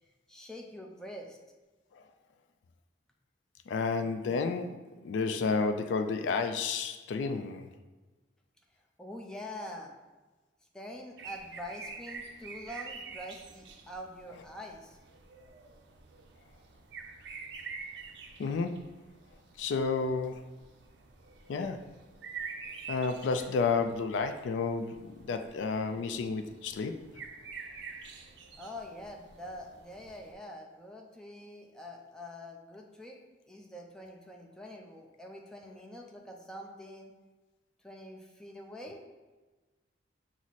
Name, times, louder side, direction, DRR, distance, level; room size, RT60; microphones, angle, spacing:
voice 1, 0.3-1.4 9.0-9.9 10.7-15.0 28.6-33.2 33.5-37.1 37.8-39.0, left 1 dB, 5° left, 0 dB, 0.5 m, -45 dB
voice 2, 3.7-4.8 5.0-7.7 18.4-18.9 19.6-20.5 21.5-21.8 22.9-27.0, left 4 dB, 85° left, 7 dB, 0.3 m, -31 dB
sound 1, 11.2-30.3, right 5 dB, 70° right, 0.5 m, -47 dB
6.0 x 2.0 x 4.0 m, 1.2 s
head